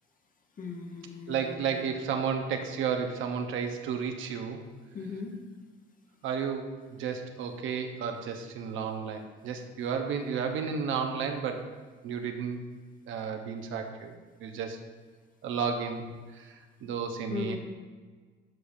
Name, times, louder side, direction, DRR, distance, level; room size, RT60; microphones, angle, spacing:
voice 1, 0.6-1.8 4.9-5.3 17.3-17.6, left 5 dB, 45° left, 3 dB, 1.2 m, -38 dB
voice 2, 1.3-4.6 6.2-11.7 12.0-12.6 13.1-14.1 14.4-14.8 15.4-16.1 16.3-17.6, right 6 dB, 85° right, 5 dB, 0.9 m, -32 dB
12.0 x 5.0 x 2.7 m, 1.4 s
cardioid pair, 90°, 20 cm